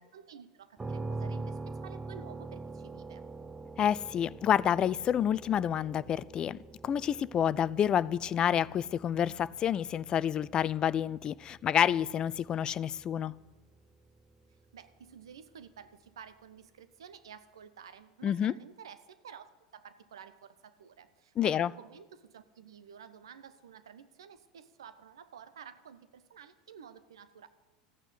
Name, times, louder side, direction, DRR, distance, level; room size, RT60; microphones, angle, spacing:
voice 1, 0.0-3.3 14.7-27.5, right 7 dB, 75° right, 0.9 m, -51 dB
sound 1, 0.8-14.5, right 3 dB, 15° right, 0.7 m, -44 dB
voice 2, 3.8-13.3 18.2-18.5 21.4-21.7, left 9 dB, 35° left, 0.4 m, -29 dB
14.5 x 9.0 x 9.9 m
figure-of-eight pair, 80°, 3 cm